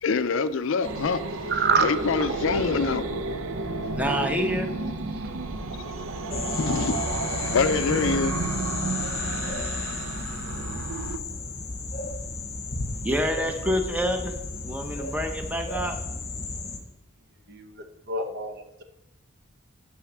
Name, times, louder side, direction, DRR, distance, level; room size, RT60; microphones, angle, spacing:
voice 1, 0.0-1.2 1.8-3.0 6.5-7.1 7.4-8.3, left 5 dB, 70° left, 0.4 m, -25 dB
sound 1, 0.8-11.2, right 3 dB, 80° right, 0.6 m, -31 dB
voice 2, 1.5-1.9 2.2-2.3 17.5-18.5, right 5 dB, 50° right, 0.9 m, -26 dB
voice 3, 3.9-4.7 13.0-14.4 14.6-16.0, equal, 5° right, 0.8 m, -27 dB
sound 2, 6.3-16.8, left 3 dB, 30° left, 0.9 m, -33 dB
6.1 x 5.8 x 6.1 m
head